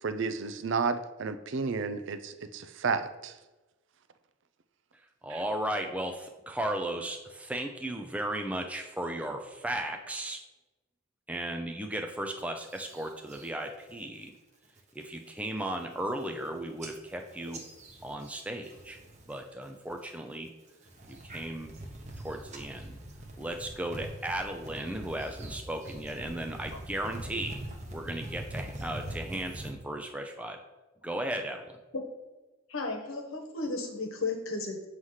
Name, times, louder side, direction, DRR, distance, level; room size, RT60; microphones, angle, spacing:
voice 1, 0.0-3.3 5.3-5.4, right 4 dB, 60° right, 11 dB, 0.5 m, -32 dB
voice 2, 5.2-10.4 11.3-14.3 15.0-17.6 18.0-19.0 19.3-20.5 21.1-21.7 22.2-23.0 23.4-27.6 27.9-30.6 31.0-31.7, right 1 dB, 5° right, 4 dB, 0.4 m, -35 dB
sound 1, 12.7-13.5 13.9-14.3 14.6-15.0 15.5-15.6 15.8-16.5 16.8-19.4 19.6-20.1 20.7-29.7, right 1 dB, 35° right, 0.9 m, -43 dB
voice 3, 32.7-34.9, left 3 dB, 75° left, 4 dB, 1.1 m, -34 dB
7.8 x 3.2 x 5.6 m, 1.1 s
head